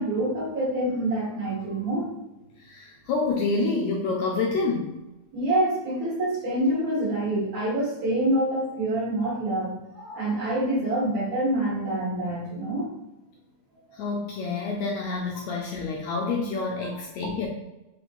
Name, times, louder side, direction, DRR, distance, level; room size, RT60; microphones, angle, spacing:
voice 1, 0.0-2.1 5.3-12.9 13.9-14.0, right 1 dB, 60° right, -7 dB, 2.8 m, -26 dB
voice 2, 2.6-5.0 13.9-17.5, left 3 dB, 80° left, -2 dB, 1.7 m, -28 dB
5.5 x 3.0 x 2.5 m, 0.97 s
omnidirectional pair, 3.5 m